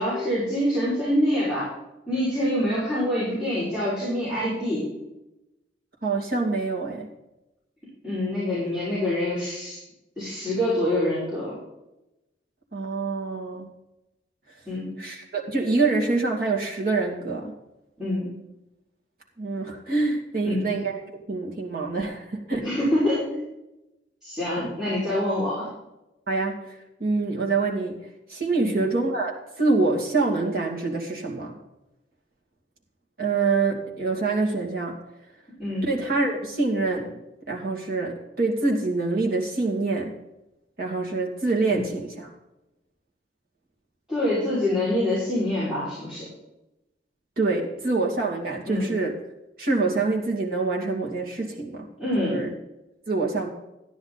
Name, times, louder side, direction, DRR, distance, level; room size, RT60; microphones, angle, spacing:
voice 1, 0.0-1.7 2.1-4.9 8.0-9.8 10.2-11.5 14.7-14.9 18.0-18.3 20.4-20.7 22.6-23.4 24.2-25.7 28.6-28.7 35.6-35.9 41.7-41.9 44.1-46.3 48.7-48.9 52.0-52.4, left 1 dB, 5° right, -12 dB, 5.4 m, -25 dB
voice 2, 6.0-7.1 12.7-13.7 15.0-17.5 19.4-21.0 21.3-22.7 26.3-26.6 27.0-28.0 28.3-31.6 33.2-35.0 35.9-37.1 37.5-40.1 40.8-42.3 47.4-49.1 49.6-51.9 52.2-52.5 53.1-53.5, right 3 dB, 50° right, -1 dB, 2.5 m, -25 dB
13.5 x 10.0 x 4.1 m, 0.94 s
head